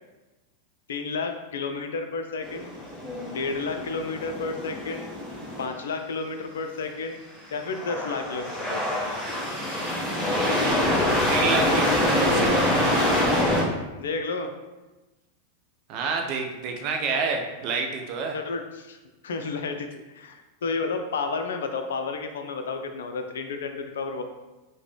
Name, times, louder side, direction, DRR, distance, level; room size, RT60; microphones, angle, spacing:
voice 1, 0.9-2.7 3.3-5.1 5.6-7.2 7.5-9.2 14.0-14.5 18.3-19.0 19.2-24.2, left 4 dB, 65° left, 6 dB, 0.3 m, -31 dB
sound 1, 2.4-5.6 7.6-13.6, left 1 dB, 5° right, 1.1 m, -25 dB
voice 2, 11.3-12.7 15.9-18.4, right 4 dB, 45° right, 3 dB, 0.5 m, -28 dB
3.8 x 2.1 x 3.1 m, 1.1 s
figure-of-eight pair, 90°, 0 cm